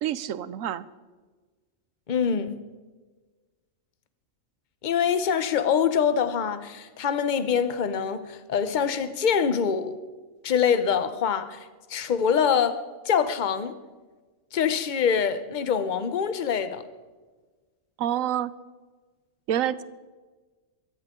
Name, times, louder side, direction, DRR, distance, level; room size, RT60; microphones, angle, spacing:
voice 1, 0.0-0.9 18.0-18.5 19.5-19.8, right 11 dB, 80° right, 1.0 m, -27 dB
voice 2, 2.1-2.6 4.8-10.0 10.4-13.7 14.5-16.8, left 7 dB, 40° left, 0.9 m, -25 dB
22.5 x 15.0 x 3.7 m
omnidirectional pair, 1.4 m